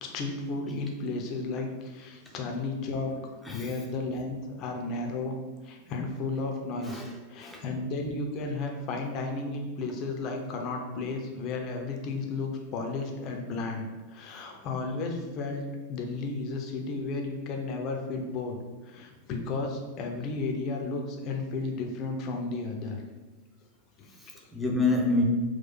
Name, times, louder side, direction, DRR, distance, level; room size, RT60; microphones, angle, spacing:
voice 1, 0.0-3.1 3.5-5.3 5.6-7.0 7.3-18.6 18.8-23.0 24.0-24.1, left 3 dB, 40° left, 0.7 m, -33 dB
voice 2, 3.1-3.9 6.8-7.7 24.2-25.2, left 3 dB, 5° left, 0.8 m, -29 dB
4.4 x 2.2 x 4.2 m
figure-of-eight pair, 90°, 0 cm